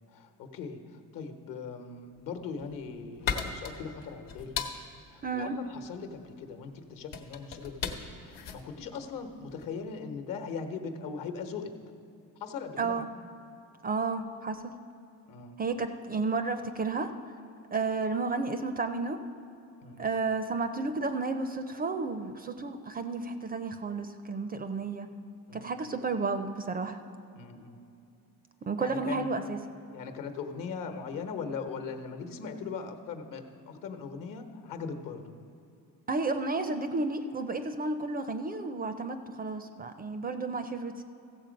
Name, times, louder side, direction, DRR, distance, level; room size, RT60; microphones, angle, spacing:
voice 1, 0.1-4.6 5.1-8.0 8.3-11.7 12.4-13.1 15.3-15.6 19.8-20.1 25.5-25.7 27.3-27.8 28.8-29.3 29.9-35.3, left 5 dB, 65° left, 6 dB, 1.0 m, -40 dB
sound 1, 2.4-9.8, left 6 dB, 85° left, 1.1 m, -38 dB
voice 2, 5.2-5.6 12.8-13.1 13.8-14.7 15.6-17.1 17.7-19.2 20.0-25.1 25.5-27.0 28.6-29.6 36.1-41.0, right 3 dB, 25° right, 9 dB, 0.4 m, -32 dB
15.0 x 7.0 x 5.2 m, 2.7 s
cardioid pair, 135°, 36 cm